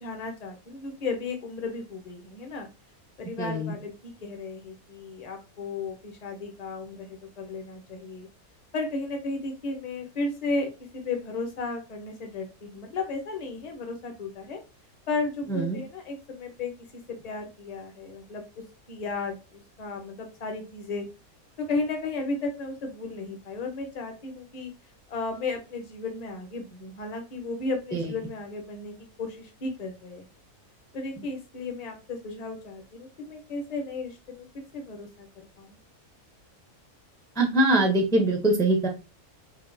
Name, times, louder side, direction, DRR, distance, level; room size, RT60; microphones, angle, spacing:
voice 1, 0.0-2.7 3.2-8.3 8.7-14.6 15.1-16.7 17.1-18.4 18.9-21.0 21.6-24.7 25.1-30.2 30.9-35.8, left 3 dB, 35° left, 4 dB, 0.8 m, -34 dB
voice 2, 3.4-3.7 15.5-15.8 27.9-28.0 37.4-38.9, right 2 dB, 5° left, 2 dB, 0.3 m, -23 dB
5.1 x 2.5 x 2.6 m, 0.29 s
omnidirectional pair, 1.6 m